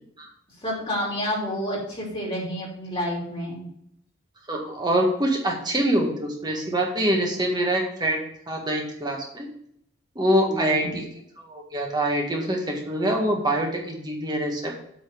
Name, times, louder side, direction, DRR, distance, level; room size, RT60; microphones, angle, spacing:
voice 1, 0.6-3.7 10.5-10.9, left 1 dB, 25° left, -4 dB, 3.0 m, -29 dB
voice 2, 4.5-9.5 10.1-11.1 11.4-14.7, right 1 dB, 20° right, 0 dB, 1.6 m, -25 dB
8.3 x 4.1 x 6.8 m, 0.72 s
head